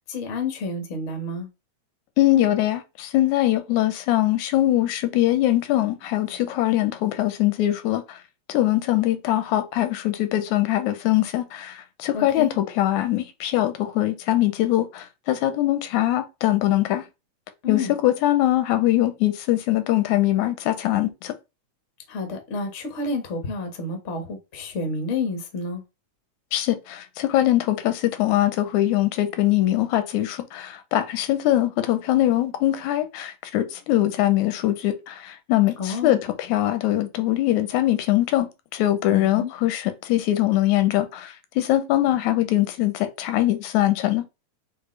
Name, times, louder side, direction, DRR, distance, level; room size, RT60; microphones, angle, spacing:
voice 1, 0.1-1.5 12.1-12.5 17.6-17.9 22.1-25.8 35.8-36.2 39.1-39.5, left 3 dB, 65° left, 0.7 m, -29 dB
voice 2, 2.2-8.2 8.5-17.0 17.7-21.3 26.5-44.2, left 14 dB, 85° left, 1.9 m, -22 dB
6.5 x 2.6 x 3.1 m
omnidirectional pair, 3.3 m